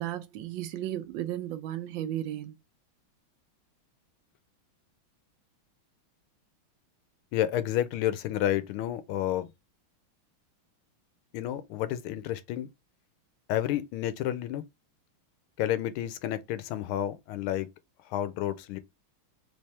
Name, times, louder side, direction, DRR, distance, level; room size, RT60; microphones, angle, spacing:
voice 1, 0.0-2.6, right 12 dB, 75° right, 1.2 m, -34 dB
voice 2, 7.3-9.5 11.3-12.7 13.5-14.6 15.6-17.7 18.1-18.8, left 12 dB, 90° left, 1.5 m, -30 dB
3.5 x 3.4 x 4.2 m
omnidirectional pair, 2.3 m